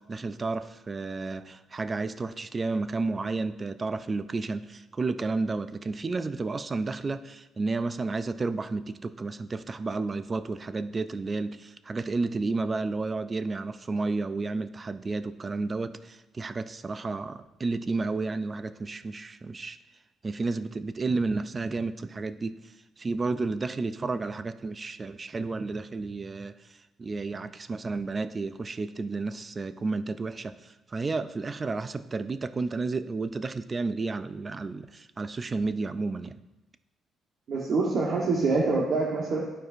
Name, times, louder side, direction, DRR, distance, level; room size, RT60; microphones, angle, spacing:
voice 1, 0.0-19.8 20.2-26.5 27.0-36.4, right 3 dB, 30° right, 12 dB, 0.3 m, -31 dB
voice 2, 37.5-39.4, right 3 dB, 60° right, -4 dB, 1.1 m, -25 dB
11.5 x 4.5 x 2.5 m, 1.0 s
cardioid pair, 90°, 0 cm